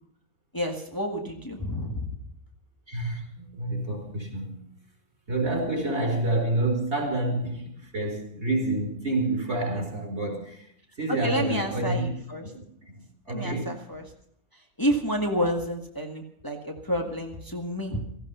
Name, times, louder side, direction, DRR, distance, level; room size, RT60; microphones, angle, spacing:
voice 1, 0.5-2.1 11.1-12.5 13.3-14.1 14.8-18.0, equal, 15° left, 2 dB, 1.8 m, -29 dB
voice 2, 2.9-4.6 5.3-10.7 11.0-12.1 12.5-12.9 13.2-13.7, right 2 dB, 60° right, 3 dB, 4.9 m, -28 dB
17.0 x 15.0 x 5.7 m, 0.67 s
omnidirectional pair, 1.3 m